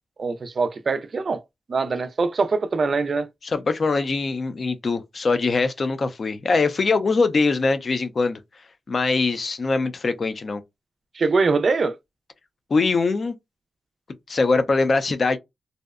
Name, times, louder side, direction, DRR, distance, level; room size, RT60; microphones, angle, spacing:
voice 1, 0.2-1.4 1.7-3.3 11.1-12.0, right 4 dB, 50° right, 0.4 m, -23 dB
voice 2, 3.4-8.4 8.9-10.6 12.7-13.3 14.3-15.4, left 3 dB, 45° left, 0.4 m, -22 dB
2.6 x 2.0 x 2.3 m
wide cardioid pair, 105°, 0 cm